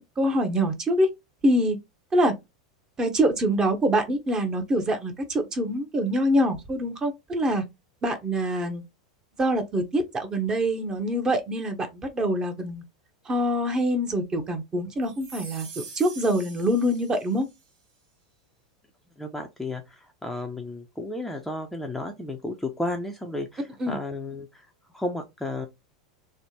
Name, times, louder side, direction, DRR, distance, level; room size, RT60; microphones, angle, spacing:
voice 1, 0.2-1.1 1.4-1.8 2.1-2.3 3.0-7.6 8.0-8.8 9.4-12.8 13.3-17.4 23.8-24.0, equal, 25° right, 0.8 m, -25 dB
sound 1, 15.1-17.6, right 4 dB, 55° right, 1.1 m, -44 dB
voice 2, 19.2-24.7 24.9-25.7, left 2 dB, 5° left, 0.5 m, -33 dB
3.3 x 2.1 x 2.9 m
hypercardioid pair, 90°, 3 cm